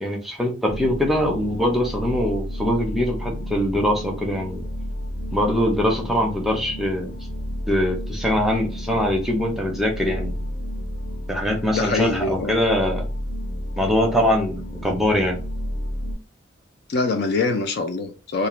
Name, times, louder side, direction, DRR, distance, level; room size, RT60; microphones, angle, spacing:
voice 1, 0.0-4.6 5.3-7.1 7.7-10.4 11.3-13.1 13.8-15.4, left 1 dB, ahead, 0.5 m, -22 dB
sound 1, 0.7-16.1, equal, 75° left, 0.8 m, -32 dB
voice 2, 11.7-12.6 16.9-18.5, left 3 dB, 55° left, 0.4 m, -24 dB
2.4 x 2.1 x 2.9 m
head